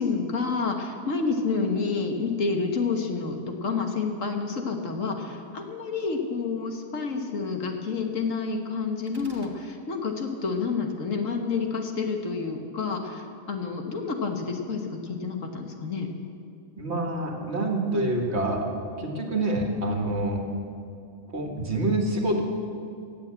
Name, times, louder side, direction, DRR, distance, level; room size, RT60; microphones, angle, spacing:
voice 1, 0.0-16.1, left 4 dB, 60° left, 4 dB, 1.6 m, -29 dB
sound 1, 9.1-9.6, right 1 dB, 15° right, 1.1 m, -46 dB
voice 2, 16.8-18.7 19.0-20.4 21.3-22.4, right 1 dB, 45° right, 2 dB, 1.9 m, -26 dB
16.0 x 8.1 x 8.6 m, 2.5 s
omnidirectional pair, 1.6 m